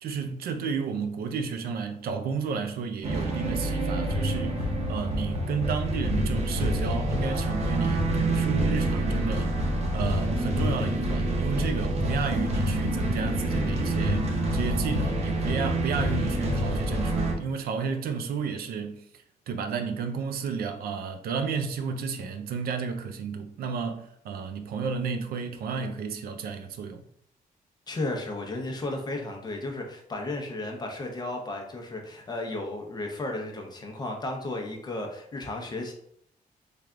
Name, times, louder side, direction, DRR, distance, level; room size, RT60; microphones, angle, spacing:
voice 1, 0.0-19.0 19.5-27.0, right 5 dB, 85° right, 0.4 m, -32 dB
sound 1, 3.0-17.3, right 1 dB, 45° right, 0.7 m, -27 dB
voice 2, 27.9-35.9, left 2 dB, 25° left, 0.6 m, -34 dB
3.3 x 2.3 x 3.6 m
wide cardioid pair, 155°, 15 cm